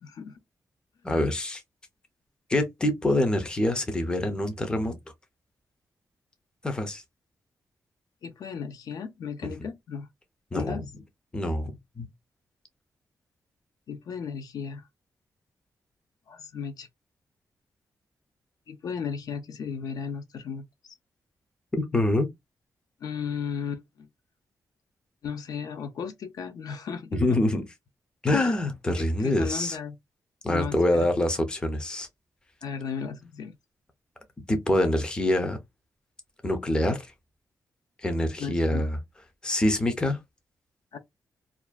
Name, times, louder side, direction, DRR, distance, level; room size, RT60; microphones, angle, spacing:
voice 1, 0.0-0.4 1.1-1.2 8.2-10.1 10.5-10.8 13.9-14.8 16.3-16.9 18.7-20.9 23.0-24.1 25.2-27.4 28.3-28.5 28.9-30.0 30.5-31.1 32.6-33.5 38.4-38.9 40.9-41.0, left 6 dB, 70° left, 0.4 m, -35 dB
voice 2, 1.0-1.6 2.5-5.0 6.6-7.0 10.5-10.8 11.3-12.1 21.8-22.3 27.1-27.6 28.2-29.8 30.4-32.1 34.5-35.6 36.4-37.1 38.0-39.0 39.4-40.2, left 1 dB, 15° left, 0.4 m, -25 dB
2.4 x 2.2 x 2.3 m
wide cardioid pair, 170°, 7 cm